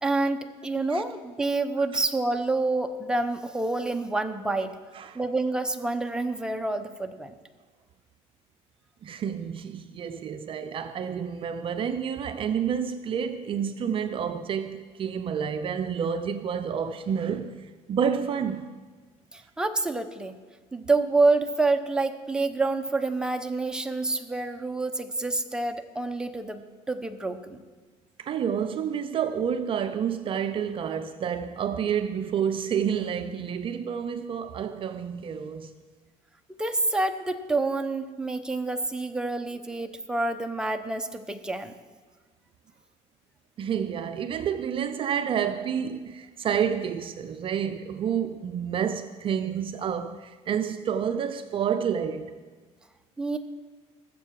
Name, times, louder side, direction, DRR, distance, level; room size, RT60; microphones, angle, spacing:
voice 1, 0.0-4.7 5.1-7.4 19.3-20.4 20.7-27.6 36.6-41.7 53.2-53.4, right 3 dB, 5° right, 0.8 m, -27 dB
voice 2, 9.0-18.7 28.2-35.7 43.6-52.3, right 8 dB, 45° right, 0.6 m, -29 dB
19.5 x 7.5 x 4.7 m
cardioid pair, 115°, 13 cm